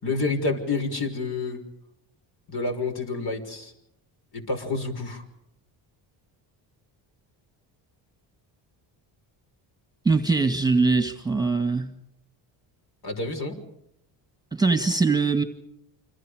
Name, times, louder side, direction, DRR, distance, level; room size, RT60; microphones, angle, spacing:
voice 1, 0.0-1.6 2.5-3.7 4.3-5.2 13.0-13.6, left 3 dB, 50° left, 4 dB, 6.1 m, -28 dB
voice 2, 10.1-11.9 14.5-15.4, right 4 dB, 10° right, 9 dB, 2.0 m, -22 dB
29.5 x 26.0 x 5.1 m, 0.78 s
cardioid pair, 80°, 49 cm